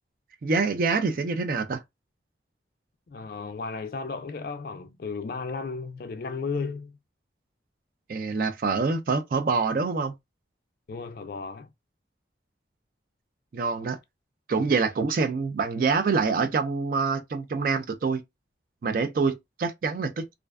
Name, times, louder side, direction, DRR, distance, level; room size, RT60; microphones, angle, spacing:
voice 1, 0.4-1.8 8.1-10.1 13.5-14.0 14.5-18.2 18.8-20.3, right 4 dB, 50° right, 0.3 m, -26 dB
voice 2, 3.1-7.0 10.9-11.7, left 4 dB, 50° left, 0.4 m, -34 dB
2.4 x 2.2 x 2.2 m
head